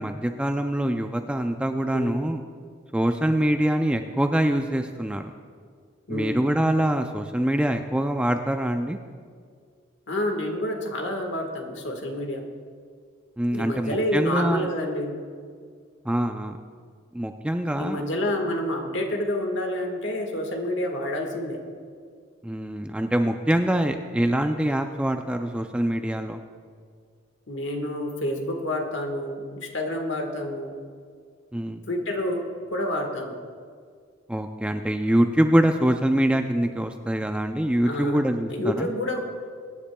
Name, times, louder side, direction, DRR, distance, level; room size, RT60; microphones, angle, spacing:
voice 1, 0.0-2.4 2.9-5.3 6.1-9.0 13.4-14.7 16.1-16.6 17.1-18.0 22.4-26.4 31.5-31.8 34.3-38.9, right 1 dB, 5° right, 5 dB, 0.3 m, -24 dB
voice 2, 6.1-6.4 10.1-12.4 13.5-15.1 17.8-21.6 27.5-30.7 31.9-32.4 32.7-33.3 37.8-38.2 38.5-39.2, left 1 dB, 60° left, 3 dB, 1.5 m, -28 dB
23.5 x 10.0 x 2.2 m, 2.1 s
head